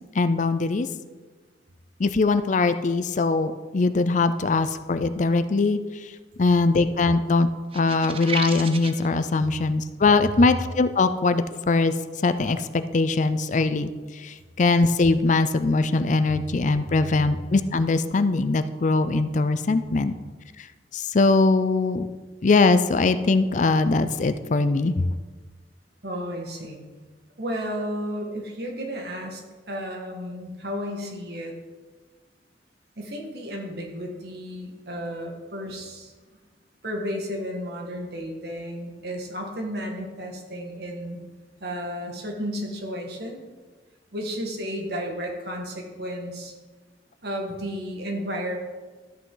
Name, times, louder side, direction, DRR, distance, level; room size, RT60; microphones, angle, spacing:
voice 1, 0.1-0.9 2.0-5.8 6.4-7.5 7.7-11.9 12.2-13.9 14.2-20.1 20.9-22.1 22.4-24.9, left 3 dB, 45° left, 11 dB, 0.5 m, -21 dB
sound 1, 7.7-9.1, right 4 dB, 30° right, 0.7 m, -32 dB
voice 2, 26.0-26.8 27.4-31.6 33.0-36.1 36.8-41.2 41.6-43.4 44.1-46.5 47.2-48.6, equal, 60° right, 1 dB, 1.9 m, -33 dB
13.0 x 8.4 x 3.9 m, 1.4 s
head